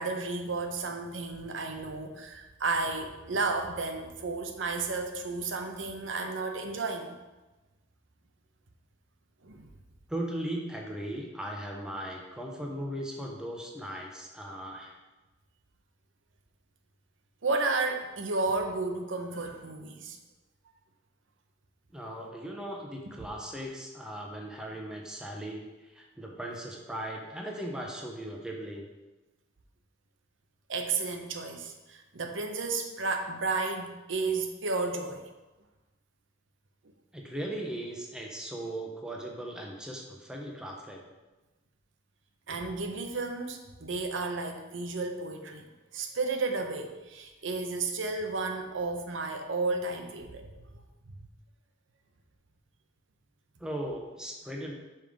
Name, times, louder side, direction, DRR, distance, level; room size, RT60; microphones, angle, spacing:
voice 1, 0.0-7.2 9.4-9.7 17.4-20.2 30.7-35.2 42.5-50.5, right 3 dB, 85° right, 4 dB, 0.8 m, -32 dB
voice 2, 10.1-14.9 21.9-28.8 37.1-41.0 53.6-54.7, right 1 dB, 5° right, 0 dB, 0.8 m, -38 dB
5.4 x 5.4 x 5.0 m, 1.1 s
head